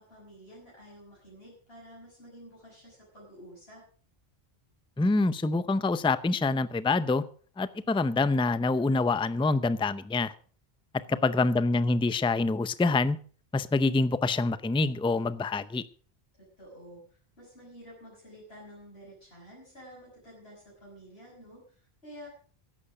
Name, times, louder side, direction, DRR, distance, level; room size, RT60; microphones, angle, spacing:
voice 1, 0.0-3.8 11.1-11.8 16.6-22.3, equal, 75° left, -5 dB, 6.0 m, -50 dB
voice 2, 5.0-7.2 7.6-10.3 11.1-13.2 13.5-15.8, left 3 dB, 5° left, 14 dB, 0.4 m, -26 dB
15.0 x 11.5 x 5.0 m, 0.43 s
omnidirectional pair, 1.1 m